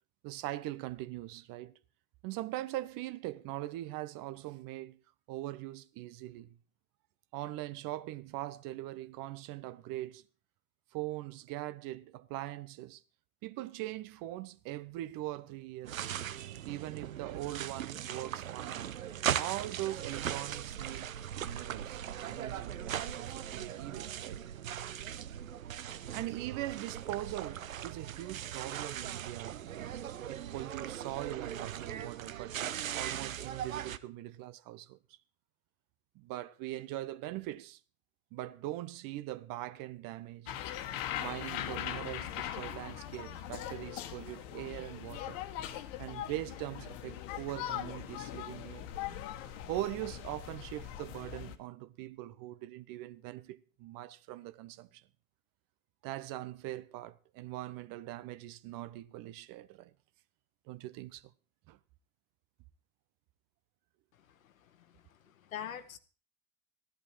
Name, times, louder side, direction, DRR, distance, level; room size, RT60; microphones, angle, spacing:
voice 1, 0.2-1.8 2.2-5.0 5.3-6.6 7.3-10.2 10.9-13.0 13.4-16.0 16.3-18.8 19.3-21.2 21.4-22.0 22.3-24.4 26.1-29.7 30.3-35.0 36.1-37.8 38.3-40.6 41.2-45.5 46.0-49.0 49.4-55.0 56.0-59.9 60.7-61.3 61.7-61.8, right 16 dB, 55° right, 0.9 m, -41 dB
sound 1, 15.8-34.0, right 10 dB, 90° right, 0.6 m, -39 dB
sound 2, 40.5-51.6, left 11 dB, 70° left, 1.3 m, -41 dB
voice 2, 64.3-66.0, left 10 dB, 85° left, 1.1 m, -45 dB
14.5 x 11.0 x 4.5 m
hypercardioid pair, 65°, 40 cm